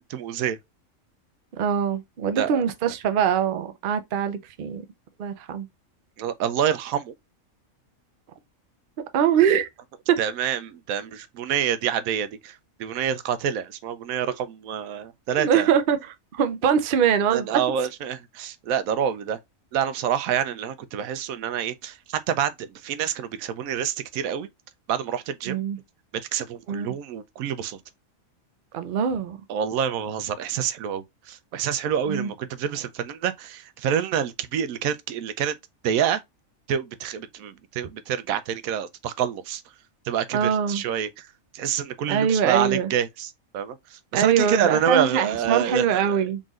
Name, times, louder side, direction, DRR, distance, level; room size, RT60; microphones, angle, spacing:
voice 1, 0.1-0.6 2.3-2.6 6.2-7.1 10.2-15.7 17.3-19.4 19.7-24.5 24.9-25.6 26.3-27.8 29.5-35.6 35.8-36.2 36.7-39.6 40.1-41.3 41.5-46.2, right 8 dB, 85° right, 1.0 m, -27 dB
voice 2, 1.6-4.8 5.2-5.7 9.1-9.7 10.1-10.2 14.3-14.4 15.4-16.0 16.3-17.6 25.5-25.8 26.7-27.0 28.7-29.4 32.1-32.3 40.3-40.8 42.1-42.9 44.1-46.4, right 8 dB, 55° right, 0.6 m, -23 dB
4.0 x 3.7 x 2.4 m
omnidirectional pair, 1.4 m